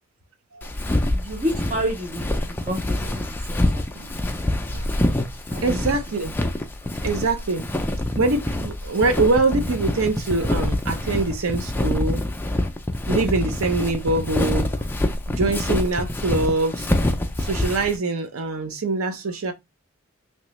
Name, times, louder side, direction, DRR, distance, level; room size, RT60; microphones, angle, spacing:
Walk footsteps, 0.6-18.0, left 1 dB, 10° left, 0.4 m, -26 dB
voice 1, 1.0-3.8 5.5-5.8, equal, 35° right, 0.7 m, -30 dB
voice 2, 5.6-6.3 7.0-7.7 8.1-12.2 13.1-14.7 15.3-16.9 17.4-19.5, right 3 dB, 85° right, 0.7 m, -24 dB
3.2 x 2.9 x 3.0 m
head